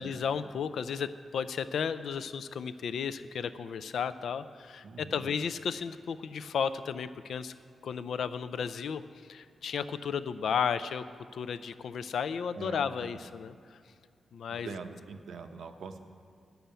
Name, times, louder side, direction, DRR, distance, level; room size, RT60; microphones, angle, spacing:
voice 1, 0.0-7.5 7.8-9.0 9.3-11.0 11.3-13.8 14.3-14.8, left 7 dB, 75° left, 13 dB, 0.4 m, -34 dB
voice 2, 4.8-5.3 12.6-13.2 14.5-16.0, right 5 dB, 80° right, 7 dB, 0.7 m, -43 dB
9.2 x 6.9 x 8.7 m, 2.3 s
wide cardioid pair, 165°, 0 cm